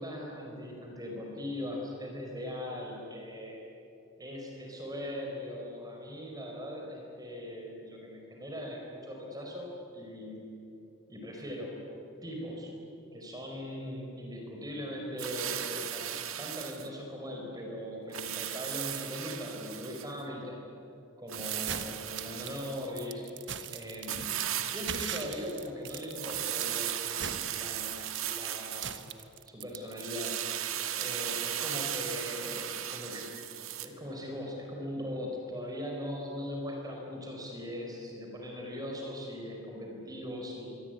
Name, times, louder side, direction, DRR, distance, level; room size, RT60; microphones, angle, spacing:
voice 1, 0.0-3.6 4.2-10.4 11.1-11.8 12.2-12.7 13.1-20.6 21.2-23.3 23.7-24.3 24.7-29.0 29.5-30.4 30.9-33.3 33.8-40.7, left 1 dB, 20° right, 0 dB, 4.9 m, -40 dB
sound 1, 15.2-16.9 18.1-20.1 21.3-23.1 24.1-25.2 26.1-28.9 30.0-33.9, right 11 dB, 85° right, 1.7 m, -36 dB
sound 2, 21.4-32.7, right 8 dB, 60° right, 1.3 m, -41 dB
25.5 x 23.0 x 9.4 m, 2.8 s
head